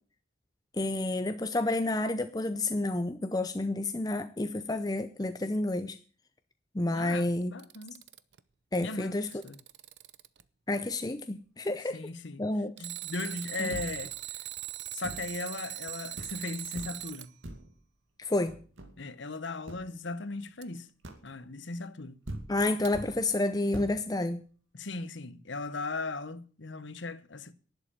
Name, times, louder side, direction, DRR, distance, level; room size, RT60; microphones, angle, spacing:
voice 1, 0.7-6.0 6.7-7.5 8.7-9.3 10.7-12.0 12.4-12.7 13.6-13.7 18.2-18.6 22.5-24.4, left 2 dB, 20° left, 0.5 m, -30 dB
voice 2, 6.9-8.0 8.8-9.6 11.9-12.4 12.8-14.1 14.9-17.3 19.0-20.9 21.2-22.2 24.7-27.5, left 3 dB, 65° left, 1.0 m, -38 dB
Alarm, 7.4-8.4 9.0-10.4 12.8-17.3 20.6-20.7 22.8-22.9, right 16 dB, 60° right, 0.7 m, -40 dB
sound 1, 13.7-14.2 15.0-15.4 15.8-15.9 16.2-16.5 16.8-17.1 17.4-17.8 18.5-19.1 19.7-19.9 21.0-21.4 22.0-22.1 22.3-23.3 23.7-24.1, right 1 dB, 80° right, 2.4 m, -43 dB
11.5 x 8.0 x 8.8 m
head